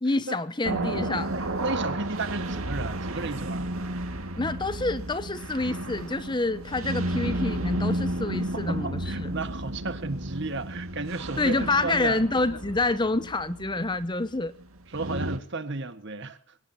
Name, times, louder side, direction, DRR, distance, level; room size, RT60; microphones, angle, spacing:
voice 1, 0.0-1.3 4.4-9.3 11.4-14.5, left 2 dB, 20° left, 0.8 m, -27 dB
sound 1, 0.6-15.4, right 1 dB, 90° right, 2.1 m, -32 dB
voice 2, 1.3-3.7 8.5-12.2 14.9-16.4, right 3 dB, 55° right, 1.6 m, -33 dB
24.5 x 18.0 x 2.9 m
head